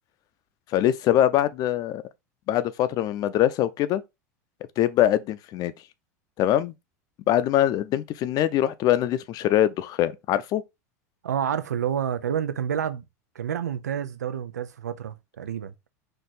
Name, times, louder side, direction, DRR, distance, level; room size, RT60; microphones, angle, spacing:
voice 1, 0.7-2.0 2.5-4.0 4.8-5.7 6.4-6.7 7.3-10.6, left 12 dB, 45° left, 0.5 m, -23 dB
voice 2, 11.2-13.0 13.4-15.7, right 9 dB, 90° right, 0.5 m, -29 dB
4.5 x 2.6 x 4.0 m
hypercardioid pair, 90°, 9 cm